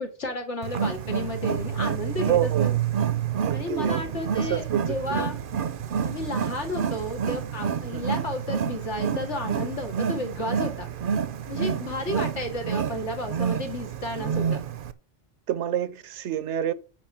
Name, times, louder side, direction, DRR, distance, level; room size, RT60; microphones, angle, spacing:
voice 1, 0.0-2.7 3.5-5.4 6.0-10.9 11.5-14.6, left 1 dB, 75° left, 2.5 m, -32 dB
Wild animals, 0.6-14.9, right 7 dB, 55° right, 0.8 m, -28 dB
voice 2, 2.3-2.8 3.3-5.2 7.9-8.0 15.5-16.7, right 11 dB, 75° right, 1.0 m, -28 dB
9.2 x 4.8 x 6.0 m
omnidirectional pair, 1.2 m